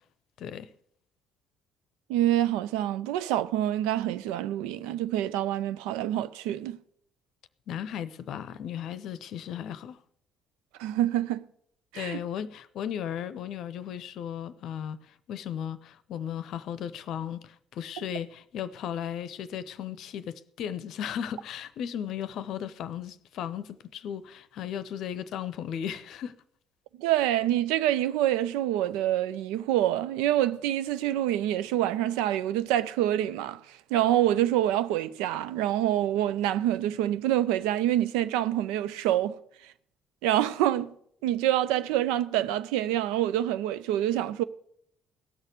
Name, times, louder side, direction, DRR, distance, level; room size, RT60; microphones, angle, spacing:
voice 1, 0.4-0.7 7.7-10.0 11.9-26.3, left 9 dB, 55° left, 0.7 m, -36 dB
voice 2, 2.1-6.8 10.8-11.5 11.9-12.2 27.0-39.7 40.2-40.9 41.2-44.4, right 12 dB, 65° right, 0.5 m, -26 dB
17.0 x 6.5 x 8.1 m
figure-of-eight pair, 45°, 0 cm